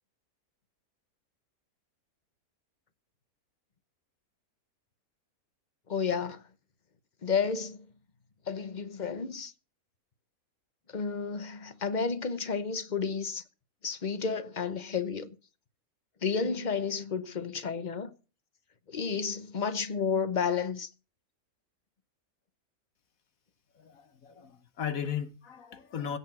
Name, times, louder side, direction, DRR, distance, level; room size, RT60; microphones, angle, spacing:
voice 1, 5.9-6.4 7.2-7.8 8.5-9.5 10.9-13.4 13.8-15.3 16.2-18.1 18.9-20.9, left 5 dB, 35° left, 0.9 m, -31 dB
voice 2, 23.8-26.2, left 8 dB, 65° left, 1.4 m, -36 dB
16.5 x 7.0 x 6.1 m
omnidirectional pair, 1.6 m